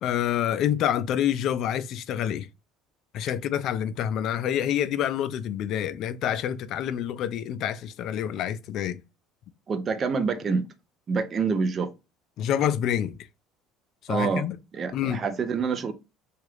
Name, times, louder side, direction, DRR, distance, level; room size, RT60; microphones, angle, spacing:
voice 1, 0.0-2.5 3.1-9.0 12.4-13.2 14.0-14.6 14.9-15.2, left 10 dB, 50° left, 0.3 m, -27 dB
voice 2, 9.7-10.7 11.1-11.9 14.1-14.4 14.7-15.9, right 5 dB, 30° right, 0.4 m, -26 dB
2.9 x 2.3 x 3.1 m
cardioid pair, 140°, 0 cm